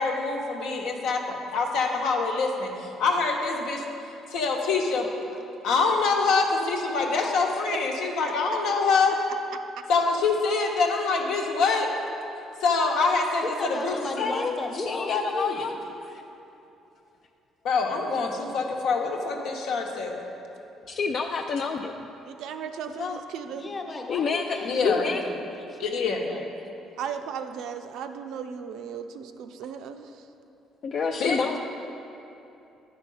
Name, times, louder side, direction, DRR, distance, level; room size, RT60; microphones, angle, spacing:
voice 1, 0.0-3.8 4.3-5.1 5.6-9.2 9.9-11.9 12.6-14.0 17.6-20.2 24.6-25.0 25.8-26.2 31.2-31.6, left 4 dB, 80° left, 1 dB, 1.0 m, -25 dB
voice 2, 7.0-7.3 13.4-15.7 23.5-26.4 31.4-31.6, left 2 dB, 25° left, 2 dB, 1.0 m, -35 dB
voice 3, 14.2-15.7 16.0-16.2 20.9-22.1 23.0-23.2 24.1-25.2 30.8-31.6, left 5 dB, 55° left, 3 dB, 0.4 m, -28 dB
voice 4, 22.3-23.7 27.0-30.3, right 7 dB, 75° right, 7 dB, 0.5 m, -36 dB
9.5 x 4.5 x 5.5 m, 2.9 s
cardioid pair, 90°, 0 cm